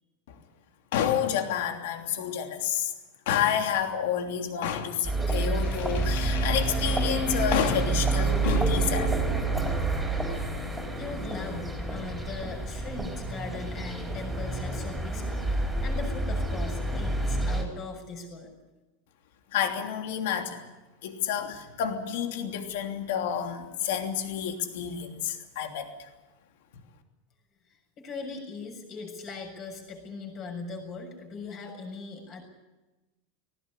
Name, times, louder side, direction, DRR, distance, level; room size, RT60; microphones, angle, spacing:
voice 1, 0.9-2.9 3.3-9.3 19.5-20.6 21.0-26.1, left 9 dB, 70° left, 4 dB, 3.1 m, -29 dB
sound 1, 5.0-17.6, right 2 dB, 5° right, 4.2 m, -28 dB
voice 2, 10.9-18.5 28.0-32.4, left 4 dB, 30° left, 2 dB, 6.9 m, -40 dB
19.0 x 18.5 x 10.0 m, 1.1 s
supercardioid pair, 165°, 0 cm